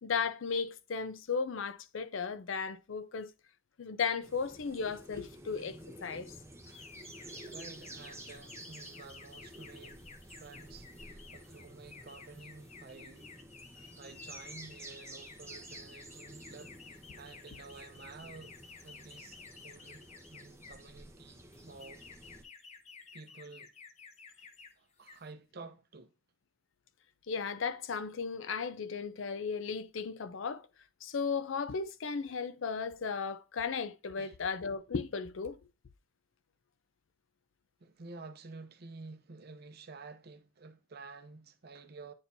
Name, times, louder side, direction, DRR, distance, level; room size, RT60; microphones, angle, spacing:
voice 1, 0.0-3.3 3.8-6.3 27.3-30.7 31.0-35.6, left 5 dB, 75° left, 0.5 m, -35 dB
sound 1, 4.2-22.4, right 1 dB, 15° right, 0.9 m, -51 dB
sound 2, 6.6-20.9 21.5-24.7 25.0-25.3, left 5 dB, 35° left, 0.6 m, -54 dB
voice 2, 7.5-10.0 10.3-13.3 14.0-18.5 18.8-20.0 20.3-22.0 23.1-23.7 24.8-26.1 34.1-34.4 37.8-42.1, right 4 dB, 55° right, 0.6 m, -51 dB
9.6 x 4.3 x 2.6 m
head